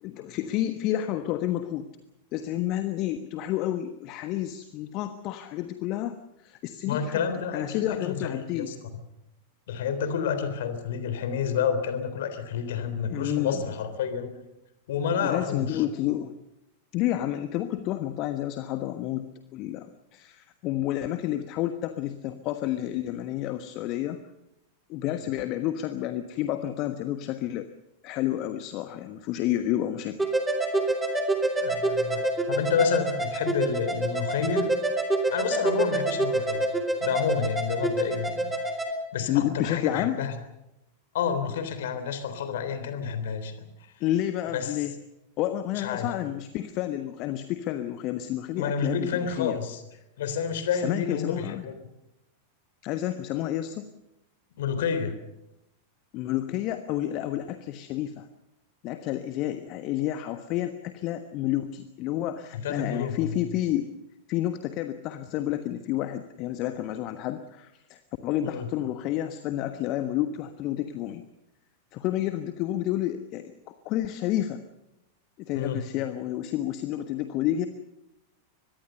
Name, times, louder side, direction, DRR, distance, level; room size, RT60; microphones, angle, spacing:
voice 1, 0.0-1.9 2.3-6.2 6.4-7.2 7.5-8.7 13.1-13.6 15.2-16.3 16.9-19.3 19.5-24.2 24.9-27.7 28.0-30.3 39.3-40.2 44.0-44.9 45.4-49.6 50.7-51.6 52.8-53.9 56.1-58.3 58.8-63.9 64.3-71.2 71.9-73.5 73.8-74.6 75.4-77.7, left 13 dB, 40° left, 9 dB, 1.3 m, -30 dB
voice 2, 6.9-8.7 9.7-14.3 14.9-15.8 25.1-25.2 31.6-34.7 35.3-36.7 37.0-38.5 39.1-40.4 41.1-43.6 44.5-44.8 45.7-46.1 48.6-49.8 50.2-51.7 54.6-55.1 62.5-63.4 68.4-68.7 75.5-75.9, left 6 dB, 55° left, 10 dB, 3.5 m, -29 dB
sound 1, 30.2-38.9, right 2 dB, 5° right, 3.6 m, -27 dB
24.0 x 21.0 x 6.8 m, 0.90 s
figure-of-eight pair, 90°, 0 cm